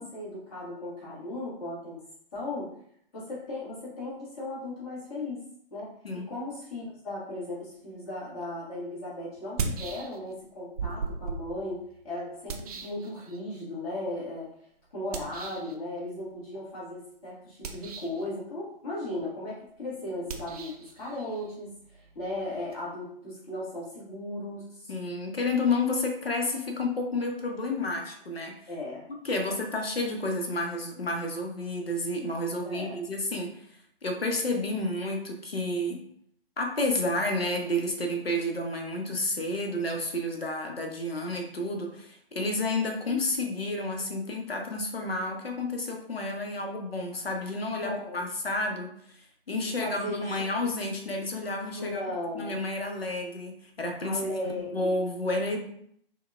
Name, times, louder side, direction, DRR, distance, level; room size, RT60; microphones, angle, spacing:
voice 1, 0.0-2.0 2.3-2.7 3.1-5.4 5.7-14.5 14.9-24.9 28.7-29.4 32.6-33.0 47.8-48.2 49.6-50.5 51.8-52.6 54.0-54.9, left 1 dB, 40° left, -7 dB, 1.5 m, -36 dB
sound 1, 8.4-8.5 9.4-10.4 10.8-13.6 15.1-15.7 17.5-18.3 20.2-22.8, right 4 dB, 40° right, 0.4 m, -38 dB
voice 2, 24.9-28.6 29.2-33.6 34.0-36.0 36.6-48.9 49.5-52.0 52.3-55.6, left 2 dB, 85° left, 3 dB, 0.8 m, -30 dB
4.4 x 2.3 x 2.3 m, 0.67 s
figure-of-eight pair, 125°, 29 cm